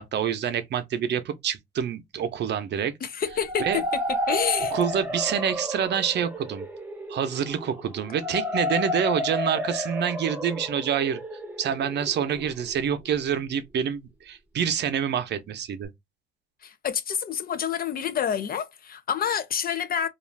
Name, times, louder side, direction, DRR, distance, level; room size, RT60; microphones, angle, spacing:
voice 1, 0.0-2.9 3.6-3.8 4.7-6.7 7.1-11.2 11.6-15.9, right 8 dB, 60° right, 0.6 m, -27 dB
voice 2, 3.0-4.0 4.3-4.7 16.6-20.1, left 8 dB, 50° left, 0.4 m, -28 dB
sound 1, 3.3-13.1, equal, 10° right, 0.7 m, -31 dB
2.4 x 2.3 x 3.1 m
cardioid pair, 90°, 20 cm